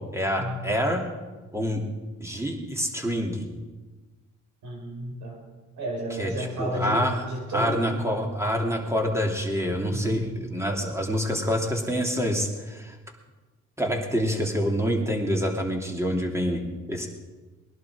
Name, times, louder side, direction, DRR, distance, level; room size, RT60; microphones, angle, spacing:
voice 1, 0.1-1.0 1.5-1.8 2.2-3.4 6.1-12.9 13.8-17.1, equal, 10° right, 2 dB, 2.8 m, -27 dB
voice 2, 4.6-5.4 5.8-7.0 7.3-8.3 9.9-10.3, right 1 dB, 80° right, 1 dB, 5.2 m, -32 dB
20.0 x 11.5 x 5.0 m, 1.2 s
cardioid pair, 90°, 30 cm